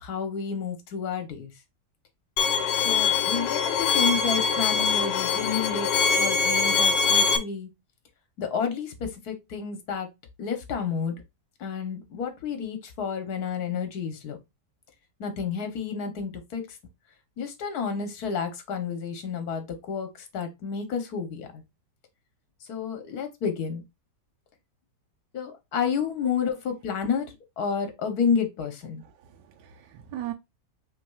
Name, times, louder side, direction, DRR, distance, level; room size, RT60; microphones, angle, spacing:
voice 1, 0.0-1.5 2.8-5.9 6.2-7.7 8.4-10.1 10.4-11.2 11.6-14.4 15.2-16.6 17.4-20.1 20.3-21.6 22.7-23.8 25.3-27.3 27.6-29.0, left 6 dB, 65° left, 1.5 m, -30 dB
Bowed string instrument, 2.4-7.4, left 5 dB, 85° left, 1.3 m, -23 dB
voice 2, 29.0-30.3, right 13 dB, 80° right, 1.2 m, -39 dB
5.7 x 3.4 x 2.3 m
omnidirectional pair, 1.9 m